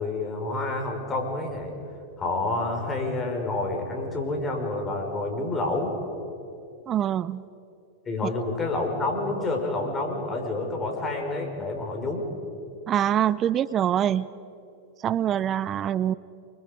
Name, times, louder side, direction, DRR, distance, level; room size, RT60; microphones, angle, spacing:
voice 1, 0.0-1.7 2.2-5.9 8.1-12.3, left 2 dB, 20° left, 2 dB, 5.8 m, -28 dB
voice 2, 6.9-7.4 12.9-14.3 15.0-16.1, right 10 dB, 30° right, 19 dB, 0.5 m, -24 dB
29.0 x 25.0 x 5.5 m, 2.7 s
hypercardioid pair, 115°, 0 cm